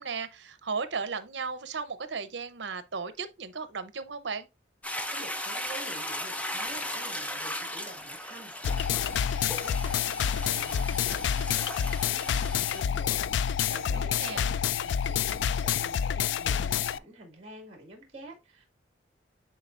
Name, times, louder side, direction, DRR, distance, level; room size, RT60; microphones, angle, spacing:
voice 1, 0.0-4.5 13.9-14.5, right 5 dB, 75° right, 0.8 m, -35 dB
Toilet flush, 4.8-12.8, left 1 dB, 10° left, 0.6 m, -37 dB
voice 2, 5.1-18.7, right 2 dB, 35° right, 2.2 m, -48 dB
sound 1, 8.6-17.0, left 8 dB, 75° left, 0.3 m, -28 dB
9.4 x 4.2 x 2.5 m
head